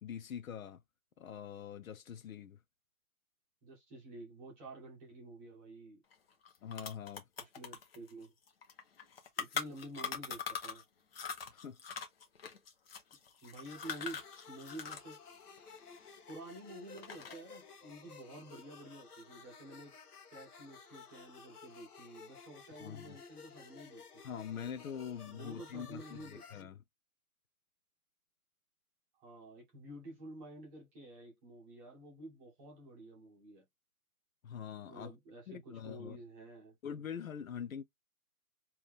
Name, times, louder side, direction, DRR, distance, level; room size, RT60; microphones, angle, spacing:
voice 1, 0.0-0.8 1.2-2.6 6.6-7.2 11.5-11.8 22.8-23.2 24.2-26.8 34.4-35.1 35.5-36.2 36.8-37.8, left 8 dB, 65° left, 0.5 m, -44 dB
voice 2, 3.6-6.0 7.4-8.3 9.4-10.8 13.4-15.2 16.3-19.9 20.3-24.4 25.2-26.4 29.1-33.6 34.9-36.7, right 1 dB, 10° right, 0.9 m, -50 dB
sound 1, 6.1-6.2 6.4-10.8 11.1-15.2 15.4-16.6 16.9-17.5, left 6 dB, 40° left, 1.0 m, -42 dB
sound 2, 13.7-26.6, left 5 dB, 85° left, 1.1 m, -55 dB
3.4 x 2.9 x 3.4 m
hypercardioid pair, 155°, 45 cm